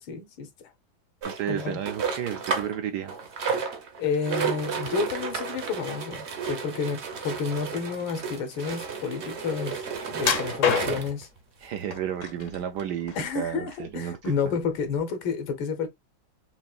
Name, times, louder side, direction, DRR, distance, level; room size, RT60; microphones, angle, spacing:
voice 1, 0.1-0.7 1.5-1.8 4.0-9.8 10.1-11.3 13.2-15.9, left 5 dB, 80° left, 1.7 m, -30 dB
sound 1, 1.2-2.8 3.1-11.2 11.9-12.0 12.2-12.3 12.8-12.9, right 5 dB, 45° right, 0.9 m, -32 dB
voice 2, 1.2-3.1 11.6-14.2 14.4-14.5, right 9 dB, 70° right, 1.0 m, -32 dB
sound 2, 10.2-11.2 11.9-12.6 13.0-13.9 14.2-14.4 15.0-15.1, left 7 dB, 55° left, 0.9 m, -27 dB
5.8 x 2.6 x 2.3 m
omnidirectional pair, 2.2 m